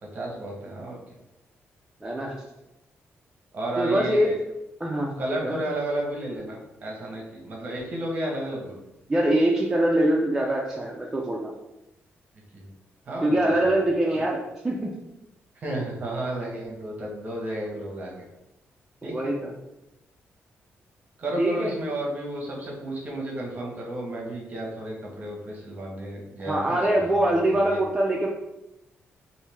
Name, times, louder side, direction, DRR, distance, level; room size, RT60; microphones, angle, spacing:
voice 1, 0.0-1.0 3.5-4.4 5.2-8.8 12.5-12.6 13.1-13.7 14.1-14.2 15.5-18.2 19.0-19.3 21.2-27.8, right 1 dB, 35° right, -1 dB, 0.9 m, -32 dB
voice 2, 2.0-2.3 3.8-4.3 4.8-5.1 5.4-5.6 9.1-11.5 13.2-14.4 14.6-14.9 19.0-19.5 21.4-21.7 26.5-28.3, right 1 dB, 10° right, -3 dB, 0.4 m, -23 dB
3.2 x 2.6 x 3.4 m, 0.92 s
wide cardioid pair, 160°, 5 cm